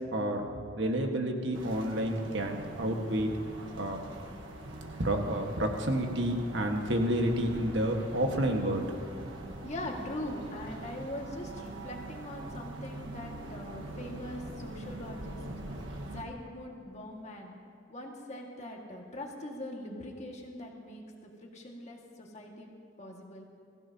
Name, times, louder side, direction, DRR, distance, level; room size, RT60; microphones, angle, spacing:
voice 1, 0.1-0.4 0.7-3.3 3.8-4.0 5.0-8.8, right 1 dB, 70° right, 3 dB, 1.5 m, -29 dB
sound 1, 1.5-16.2, right 2 dB, 85° right, 1.4 m, -43 dB
voice 2, 9.6-15.4 16.0-17.6 17.9-22.7 23.0-23.5, left 1 dB, 35° left, 0 dB, 1.8 m, -42 dB
22.0 x 15.5 x 2.8 m, 2.5 s
head